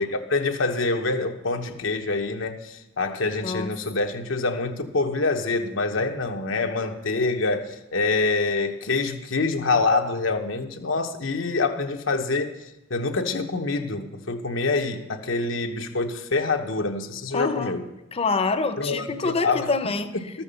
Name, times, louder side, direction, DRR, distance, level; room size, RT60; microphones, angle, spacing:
voice 1, 0.0-12.5 12.9-17.8 18.8-19.7, left 3 dB, 90° left, 4 dB, 1.0 m, -26 dB
voice 2, 17.3-17.7 18.1-20.1, left 4 dB, 30° left, 10 dB, 0.6 m, -26 dB
13.5 x 5.7 x 6.9 m, 0.97 s
head